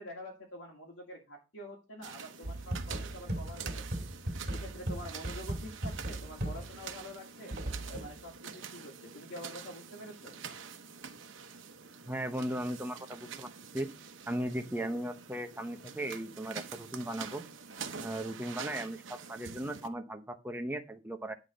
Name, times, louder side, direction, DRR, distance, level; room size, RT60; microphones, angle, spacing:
voice 1, 0.0-4.1 4.5-7.6 7.9-10.4, equal, 85° left, -2 dB, 2.1 m, -47 dB
sound 1, 2.0-19.9, right 6 dB, 90° right, 0.9 m, -46 dB
sound 2, 2.4-6.9 7.5-8.2, right 1 dB, 55° right, 2.3 m, -38 dB
voice 2, 12.0-13.5 13.7-13.9 14.3-17.4 18.0-21.3, right 1 dB, 10° right, 5 dB, 0.8 m, -37 dB
10.5 x 3.9 x 5.1 m, 0.29 s
head